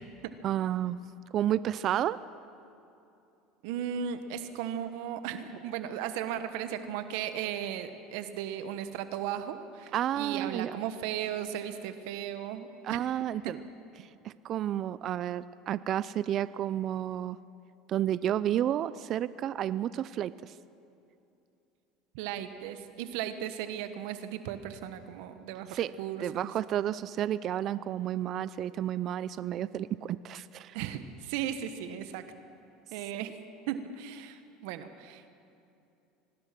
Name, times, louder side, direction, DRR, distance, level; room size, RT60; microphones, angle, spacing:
voice 1, 0.4-1.0 1.3-2.2 9.9-10.8 12.8-13.6 14.2-17.4 17.9-20.5 25.7-25.9 26.2-30.8, right 11 dB, 50° right, 17 dB, 0.5 m, -31 dB
voice 2, 3.6-13.0 13.4-13.5 22.1-26.5 30.7-32.2 32.9-33.4 33.7-35.3, right 9 dB, 75° right, 10 dB, 1.3 m, -36 dB
24.5 x 19.5 x 6.1 m, 2.7 s
supercardioid pair, 100°, 0 cm